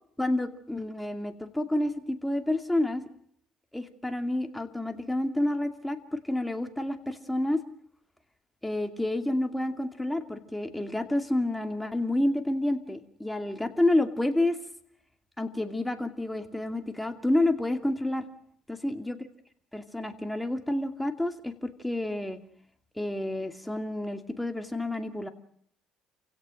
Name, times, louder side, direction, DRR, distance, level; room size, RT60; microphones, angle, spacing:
voice 1, 0.2-3.0 3.7-7.6 8.6-14.6 15.4-18.2 18.7-19.2 19.7-22.4 23.0-25.3, left 1 dB, 5° left, 6 dB, 2.5 m, -29 dB
28.5 x 17.0 x 6.5 m, 0.68 s
cardioid pair, 100°, 0 cm